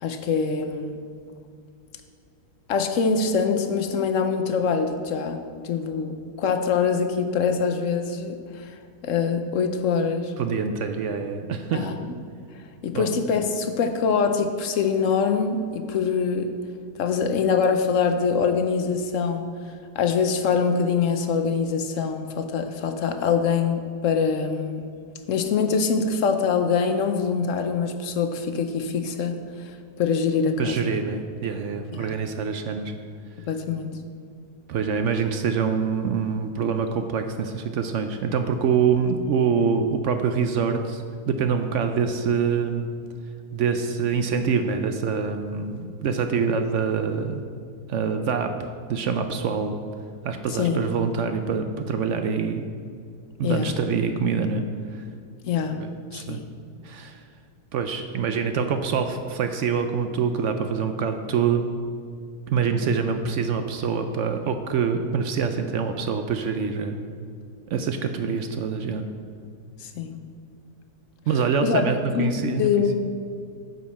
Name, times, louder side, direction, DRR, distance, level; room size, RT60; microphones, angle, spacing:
voice 1, 0.0-1.0 2.7-8.7 9.0-10.3 11.7-12.1 12.8-16.5 17.0-19.4 20.0-24.9 25.3-29.4 30.0-30.9 31.9-32.2 33.5-33.9 50.6-50.9 53.4-53.7 55.4-55.8 56.1-56.5 69.8-70.2 71.6-71.8 72.1-72.3 72.6-73.0, left 5 dB, 65° left, 7 dB, 0.9 m, -24 dB
voice 2, 10.4-11.9 12.9-13.1 30.6-32.9 34.7-42.9 43.5-47.4 47.9-49.8 50.2-52.6 53.4-54.6 54.9-55.0 55.8-56.4 56.8-57.2 57.7-61.6 62.5-67.0 67.7-69.0 71.3-72.7, right 6 dB, 70° right, 7 dB, 0.7 m, -25 dB
9.5 x 7.4 x 4.2 m, 2.4 s
omnidirectional pair, 1.7 m